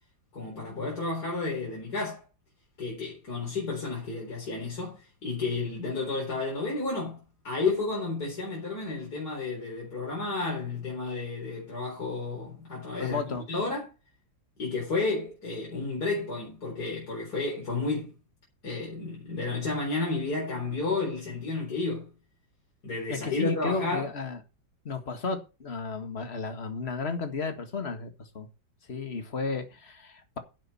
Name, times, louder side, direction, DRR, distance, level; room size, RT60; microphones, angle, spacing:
voice 1, 0.3-2.2 2.8-13.9 14.6-18.1 18.6-22.1 22.8-24.1, left 3 dB, 55° left, 4.7 m, -32 dB
voice 2, 13.0-13.4 23.1-24.4 24.9-28.5 28.9-30.4, left 4 dB, 35° left, 1.8 m, -33 dB
11.0 x 7.8 x 5.5 m
omnidirectional pair, 2.0 m